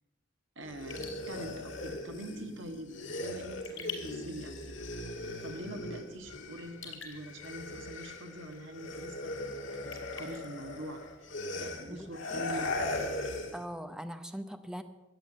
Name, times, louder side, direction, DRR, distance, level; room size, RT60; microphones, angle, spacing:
voice 1, 0.5-4.8 5.4-9.5 9.8-11.0 11.5-12.7, right 1 dB, 70° right, 6 dB, 1.6 m, -44 dB
sound 1, 0.6-6.8 7.1-13.6, left 2 dB, 75° left, 2.2 m, -39 dB
Raindrop / Drip, 0.8-11.5, left 7 dB, 90° left, 5.1 m, -51 dB
voice 2, 11.9-12.5 13.5-14.8, equal, 5° right, 8 dB, 0.7 m, -41 dB
13.5 x 9.3 x 7.9 m, 1.1 s
head